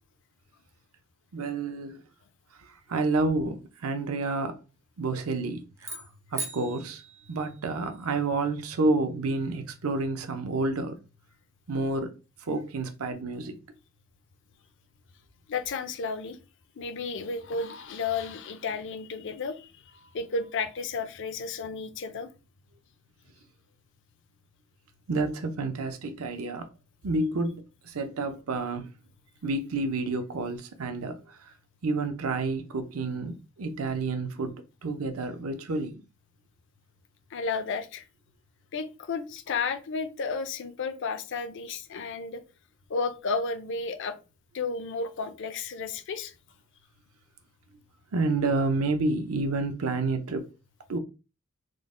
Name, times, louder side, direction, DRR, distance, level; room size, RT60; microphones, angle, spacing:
voice 1, 1.3-2.0 2.6-4.6 5.0-7.0 7.3-11.0 11.7-12.1 12.4-13.6 25.1-26.7 27.0-28.9 29.4-31.5 31.8-34.6 34.8-36.0 48.1-50.4 50.9-51.0, right 3 dB, 75° right, 0.6 m, -29 dB
sound 1, 5.8-8.1, right 3 dB, 15° right, 0.4 m, -40 dB
voice 2, 15.5-16.4 16.8-22.3 37.3-38.1 38.7-42.4 42.9-44.2 44.5-46.3, left 4 dB, 60° left, 0.5 m, -32 dB
3.8 x 2.1 x 3.6 m
head